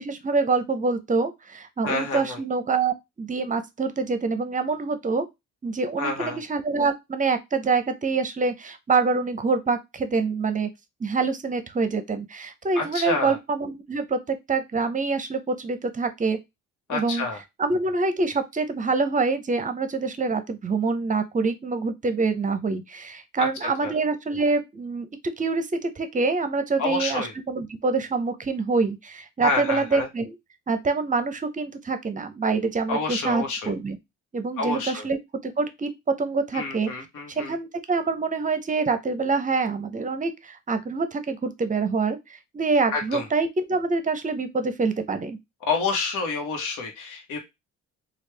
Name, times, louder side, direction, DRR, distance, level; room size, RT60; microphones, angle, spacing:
voice 1, 0.0-5.3 5.6-10.7 11.0-16.4 16.9-17.3 17.6-25.1 25.4-30.4 30.7-34.0 34.3-35.2 35.4-36.9 37.4-42.2 42.5-45.4, right 4 dB, 25° right, 10 dB, 0.6 m, -26 dB
voice 2, 1.8-2.4 6.0-6.4 12.7-13.4 16.9-17.4 23.4-23.5 23.8-23.9 26.8-27.3 29.4-30.1 32.9-33.7 34.6-35.0 36.5-37.5 42.9-43.2 45.6-47.4, left 3 dB, 80° left, 3 dB, 1.1 m, -28 dB
3.2 x 2.4 x 3.3 m, 0.20 s
cardioid pair, 90°, 30 cm